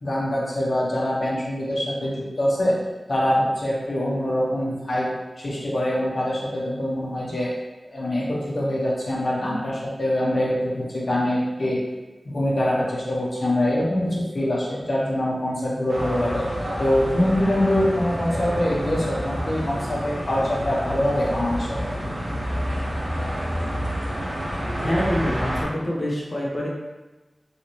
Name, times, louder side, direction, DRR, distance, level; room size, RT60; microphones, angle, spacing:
voice 1, 0.0-2.8 3.1-5.1 5.4-7.5 7.9-11.8 12.2-16.5 16.8-21.8, left 1 dB, 65° left, -5 dB, 0.8 m, -24 dB
sound 1, 15.9-25.6, equal, 80° right, 0.8 m, -28 dB
voice 2, 24.8-26.7, equal, 35° left, -4 dB, 0.8 m, -25 dB
3.2 x 2.8 x 2.9 m, 1.1 s
wide cardioid pair, 75°, 0 cm